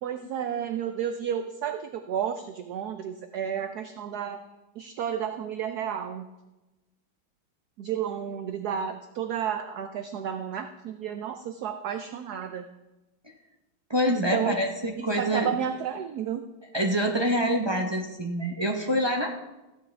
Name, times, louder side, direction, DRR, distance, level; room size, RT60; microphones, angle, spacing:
voice 1, 0.0-4.4 4.8-6.3 7.8-12.7 14.1-14.6 15.0-16.5, right 8 dB, 70° right, 7 dB, 0.9 m, -32 dB
voice 2, 13.9-15.5 16.7-19.3, equal, 30° right, 0 dB, 0.4 m, -26 dB
15.5 x 11.0 x 3.4 m, 1.0 s
omnidirectional pair, 2.3 m